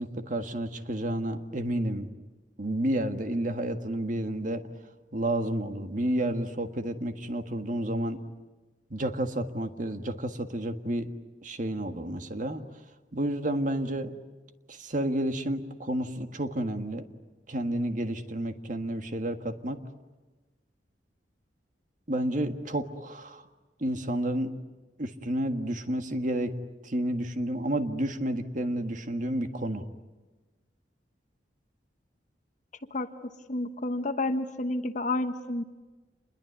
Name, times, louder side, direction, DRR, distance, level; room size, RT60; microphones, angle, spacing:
voice 1, 0.0-2.1 2.6-4.6 5.1-8.2 8.9-11.1 11.4-12.6 13.1-14.1 14.7-17.0 17.5-19.8 22.1-23.5 23.8-24.5 25.0-26.5 26.8-29.8, right 1 dB, 45° right, 7 dB, 1.7 m, -30 dB
voice 2, 33.5-35.6, left 2 dB, 45° left, 9 dB, 1.2 m, -30 dB
28.0 x 22.0 x 9.5 m, 1.2 s
head